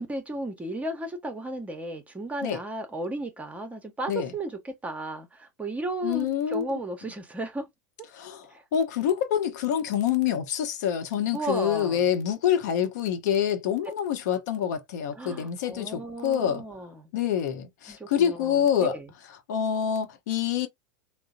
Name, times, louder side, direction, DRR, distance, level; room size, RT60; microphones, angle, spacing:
voice 1, 0.0-7.7 8.5-8.6 11.3-12.0 15.2-17.1 17.9-19.0, right 1 dB, 15° right, 0.8 m, -34 dB
voice 2, 6.0-6.7 8.1-16.6 17.1-18.9 19.5-20.7, left 9 dB, 65° left, 0.8 m, -26 dB
3.7 x 2.1 x 2.5 m
hypercardioid pair, 90°, 10 cm